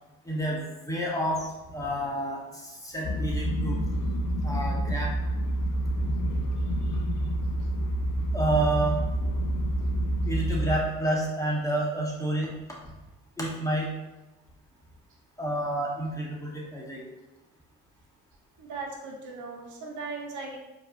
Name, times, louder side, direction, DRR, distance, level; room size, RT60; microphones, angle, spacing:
voice 1, 0.2-3.8 4.4-5.1 8.3-9.0 10.2-12.5 13.4-13.9 15.4-17.1, right 1 dB, 10° left, -4 dB, 1.3 m, -29 dB
sound 1, 3.0-10.8, right 1 dB, 70° left, 0.6 m, -28 dB
voice 2, 18.6-20.6, right 4 dB, 60° right, 0 dB, 0.9 m, -38 dB
4.5 x 3.0 x 2.7 m, 1.0 s
hypercardioid pair, 60°, 35 cm